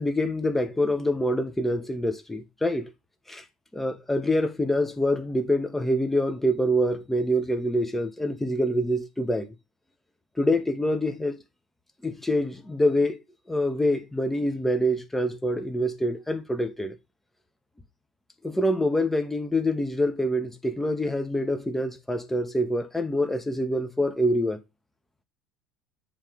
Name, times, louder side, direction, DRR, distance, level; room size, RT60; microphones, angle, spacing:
voice 1, 0.0-2.9 3.3-3.4 3.7-9.5 10.4-11.4 12.0-13.2 13.5-17.0 18.4-24.6, equal, 10° left, 1.0 m, -25 dB
7.3 x 2.8 x 5.0 m
hypercardioid pair, 70°, 3 cm